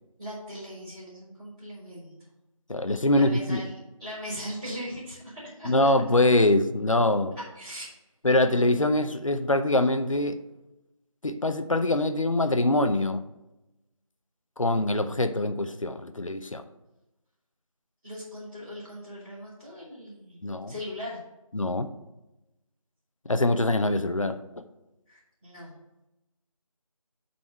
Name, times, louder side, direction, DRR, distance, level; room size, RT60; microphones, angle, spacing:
voice 1, 0.2-2.3 3.1-5.9 7.3-7.8 18.0-20.4 20.7-21.2 25.1-25.8, equal, 10° right, -19 dB, 1.7 m, -39 dB
voice 2, 2.7-3.6 5.6-7.3 8.2-10.4 11.2-13.2 14.6-16.6 20.4-20.7 21.5-21.9 23.3-24.6, left 2 dB, 65° left, 9 dB, 0.7 m, -24 dB
7.6 x 4.2 x 6.7 m, 0.96 s
figure-of-eight pair, 175°, 18 cm